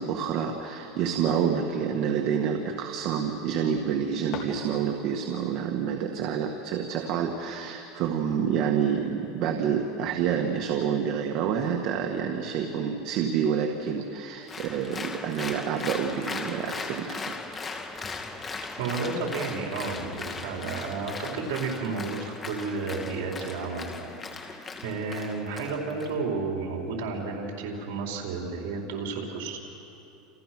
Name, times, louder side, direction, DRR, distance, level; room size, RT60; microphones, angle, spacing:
voice 1, 0.0-17.4, right 7 dB, 50° right, 3 dB, 1.8 m, -28 dB
sound 1, 4.2-5.3, left 5 dB, 50° left, 4.4 m, -41 dB
Applause, 14.5-26.1, left 4 dB, 20° left, 2.4 m, -38 dB
voice 2, 18.8-29.6, right 4 dB, 75° right, 0 dB, 4.6 m, -32 dB
29.5 x 29.0 x 6.2 m, 3.0 s
supercardioid pair, 140°, 0 cm